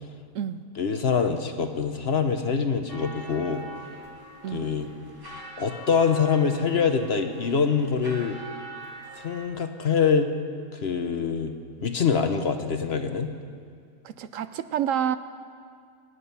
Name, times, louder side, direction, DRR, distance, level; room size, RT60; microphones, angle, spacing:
voice 1, 0.8-3.6 4.5-4.9 5.6-8.4 9.2-10.3 10.8-11.5 11.8-13.3, left 6 dB, 50° left, 7 dB, 1.0 m, -24 dB
sound 1, 2.9-9.5, right 1 dB, 15° right, 1.4 m, -43 dB
voice 2, 14.0-15.2, right 9 dB, 70° right, 12 dB, 0.9 m, -28 dB
24.5 x 9.9 x 5.6 m, 2.2 s
omnidirectional pair, 1.5 m